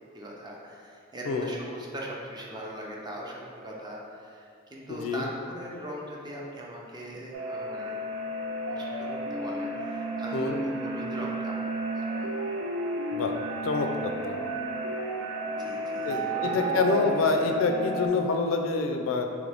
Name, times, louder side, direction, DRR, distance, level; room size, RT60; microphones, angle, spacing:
voice 1, 0.1-8.0 8.7-11.7 11.9-12.4 14.3-14.4 15.6-16.8 17.1-17.3, right 1 dB, 20° right, -3 dB, 0.5 m, -40 dB
voice 2, 4.9-5.3 10.3-10.6 13.1-13.3 13.6-14.4 16.0-19.3, left 3 dB, 80° left, 4 dB, 0.4 m, -27 dB
sound 1, 7.3-18.1, right 1 dB, 80° right, 0.5 m, -32 dB
3.9 x 3.1 x 3.3 m, 2.3 s
head